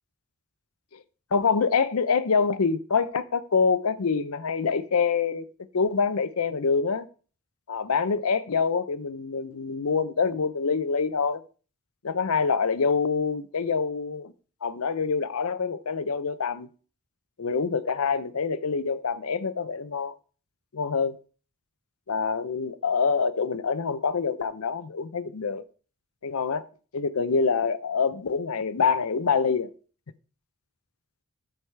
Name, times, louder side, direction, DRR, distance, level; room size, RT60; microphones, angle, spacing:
voice 1, 1.3-5.4 5.7-7.1 7.7-11.4 12.0-14.3 14.6-16.7 17.4-20.1 20.7-21.2 22.1-25.6 26.2-26.7 26.9-29.7, left 5 dB, 75° left, 0.6 m, -26 dB
13.0 x 4.8 x 3.3 m
head